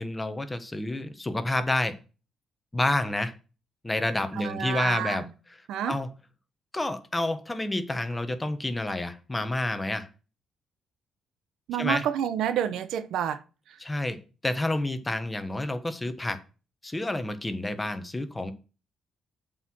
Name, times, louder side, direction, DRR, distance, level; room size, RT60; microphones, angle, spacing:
voice 1, 0.0-1.9 2.7-3.3 3.8-6.1 6.7-10.1 11.8-12.1 13.8-16.4 16.8-18.5, left 2 dB, 15° left, 1.3 m, -29 dB
voice 2, 4.3-5.2 5.7-6.0 11.7-13.4, right 9 dB, 80° right, 0.8 m, -28 dB
7.5 x 4.8 x 6.1 m
cardioid pair, 90°, 0 cm